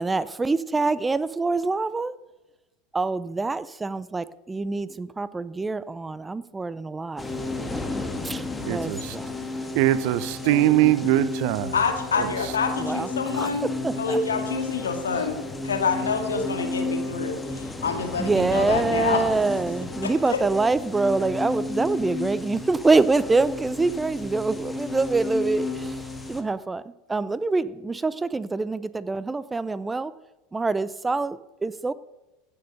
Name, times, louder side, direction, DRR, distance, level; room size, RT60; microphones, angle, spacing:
voice 1, 0.0-2.1 2.9-7.3 8.2-9.4 12.8-14.2 18.2-30.1 30.5-31.9, right 3 dB, 15° right, 0.5 m, -25 dB
sound 1, 7.2-26.4, left 3 dB, 10° left, 1.6 m, -33 dB
voice 2, 8.6-9.2 9.7-11.8 12.2-12.5, right 14 dB, 60° right, 0.7 m, -22 dB
voice 3, 11.7-15.4 15.6-19.3 20.3-20.4, left 5 dB, 85° left, 2.0 m, -27 dB
16.0 x 6.9 x 6.6 m
hypercardioid pair, 80°, 0 cm